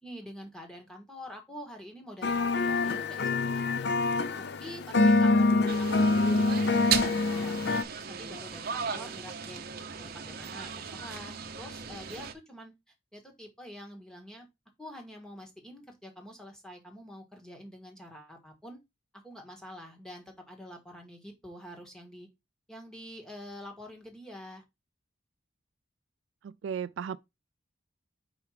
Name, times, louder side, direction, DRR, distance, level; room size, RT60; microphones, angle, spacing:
voice 1, 0.0-3.9 4.3-7.6 8.0-12.7 13.1-14.5 14.8-18.8 19.1-22.3 22.7-24.6, equal, 5° left, 1.5 m, -46 dB
sound 1, 2.2-7.8, left 3 dB, 55° left, 0.5 m, -25 dB
sound 2, 5.7-12.3, right 7 dB, 50° right, 0.8 m, -36 dB
voice 2, 26.4-27.2, right 7 dB, 65° right, 0.3 m, -35 dB
4.9 x 4.5 x 4.9 m
head